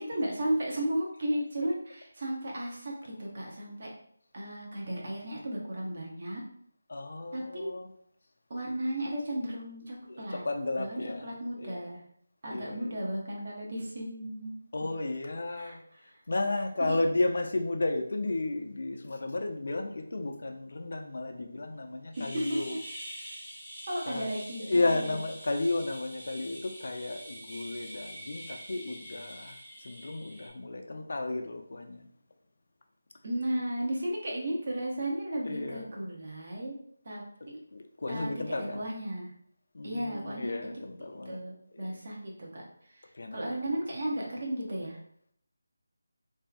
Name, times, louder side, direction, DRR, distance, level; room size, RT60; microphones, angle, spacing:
voice 1, 0.0-3.9 4.3-6.4 7.3-7.8 8.5-10.4 10.8-12.0 12.4-14.5 15.6-16.1 16.8-17.0 22.2-22.8 23.9-25.2 33.2-36.8 37.0-37.6 38.1-39.3 39.8-40.7 41.2-42.6 42.9-43.0 43.3-45.0, right 1 dB, 45° right, -2 dB, 0.7 m, -34 dB
voice 2, 6.9-7.9 10.1-11.8 12.5-12.9 14.7-15.8 16.3-22.8 24.1-24.3 24.6-32.1 35.4-36.1 37.7-38.9 39.7-41.4 41.7-42.0 43.1-43.6, left 2 dB, 60° left, 4 dB, 0.4 m, -33 dB
sound 1, 22.1-30.5, equal, 5° right, 0.6 m, -45 dB
2.6 x 2.4 x 2.3 m, 0.66 s
figure-of-eight pair, 170°, 0 cm